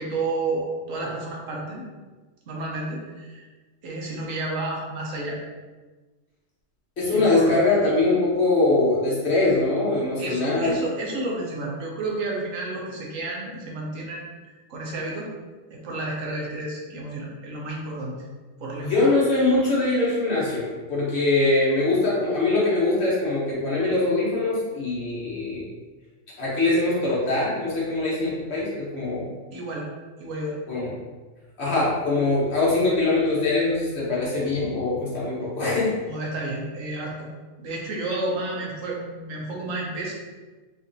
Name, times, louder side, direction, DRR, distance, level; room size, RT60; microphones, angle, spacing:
voice 1, 0.0-1.9 2.5-3.5 3.8-5.4 7.0-7.6 10.2-15.3 15.7-18.3 18.6-18.9 29.5-29.9 30.2-30.6 36.0-37.3 37.6-40.1, right 2 dB, 75° right, -2 dB, 1.1 m, -31 dB
voice 2, 7.0-10.8 18.8-25.6 26.4-29.3 30.7-30.9 31.6-35.9, left 2 dB, 55° left, -7 dB, 1.3 m, -22 dB
3.8 x 2.8 x 2.6 m, 1.3 s
omnidirectional pair, 1.4 m